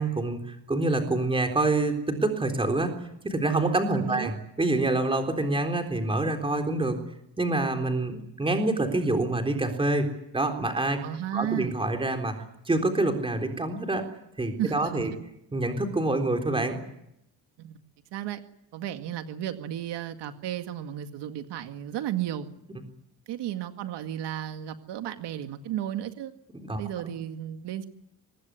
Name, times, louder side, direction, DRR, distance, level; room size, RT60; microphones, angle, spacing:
voice 1, 0.0-2.9 3.2-7.0 7.4-10.1 10.3-11.0 11.3-12.4 12.7-14.1 14.4-15.1 15.5-16.8 26.5-26.8, right 2 dB, 10° right, 5 dB, 3.8 m, -26 dB
voice 2, 3.9-4.3 11.0-11.7 14.6-15.2 17.6-17.8 18.1-18.4 18.7-22.5 23.3-26.3 26.8-27.9, right 11 dB, 75° right, 7 dB, 2.1 m, -33 dB
25.0 x 19.5 x 9.7 m, 0.79 s
cardioid pair, 165°, 42 cm